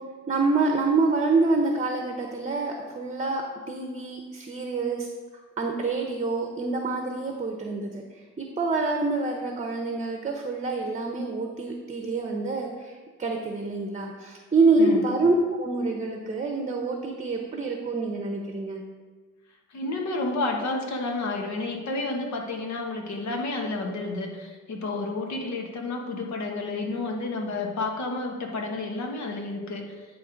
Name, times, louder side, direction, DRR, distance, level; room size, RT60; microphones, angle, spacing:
voice 1, 0.3-5.1 5.6-18.8, right 3 dB, 25° right, 2 dB, 0.8 m, -26 dB
voice 2, 14.8-15.1 19.7-30.1, left 2 dB, 65° left, 2 dB, 1.3 m, -30 dB
9.2 x 3.2 x 5.1 m, 1.4 s
cardioid pair, 90°, 30 cm